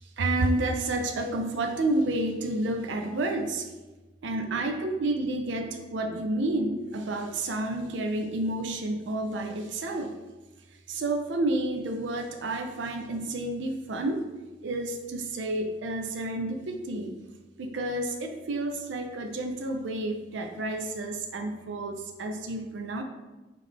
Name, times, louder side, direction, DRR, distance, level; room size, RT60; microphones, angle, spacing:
voice 1, 0.2-3.6 4.2-10.1 10.9-14.2 14.6-17.1 17.6-23.0, right 2 dB, 70° right, 4 dB, 0.5 m, -30 dB
3.8 x 3.2 x 3.4 m, 1.2 s
head